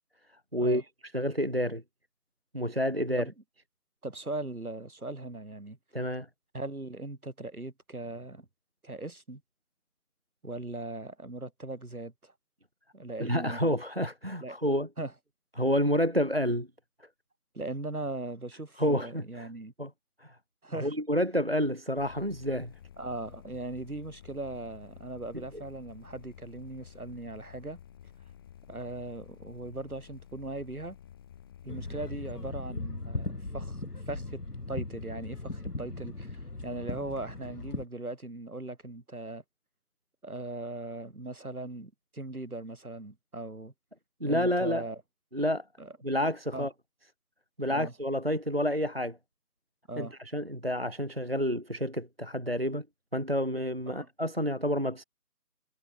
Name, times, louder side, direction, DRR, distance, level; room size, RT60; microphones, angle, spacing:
voice 1, 1.1-1.8 2.5-3.3 5.9-6.3 13.2-14.9 15.6-16.7 18.8-19.5 19.8-19.9 20.2-20.4 20.8-22.7 25.5-25.6 44.2-44.8 45.3-45.6 46.0-46.7 47.6-49.2 50.0-52.9 53.1-55.0, equal, 40° right, 0.6 m, -29 dB
voice 2, 4.0-5.8 6.5-8.5 8.8-9.4 10.4-12.3 12.9-13.6 14.4-14.6 15.0-15.1 17.5-19.7 20.6-20.9 23.0-27.8 28.7-31.0 31.6-34.4 34.7-39.4 40.2-43.7 44.3-45.0 45.8-45.9 46.5-46.7 47.7-47.9 49.9-50.2 53.9-54.1, right 2 dB, 65° right, 6.3 m, -39 dB
sound 1, 22.0-32.5, left 9 dB, 15° left, 6.5 m, -52 dB
sound 2, 31.7-37.8, left 2 dB, 75° left, 2.9 m, -38 dB
figure-of-eight pair, 165°, 47 cm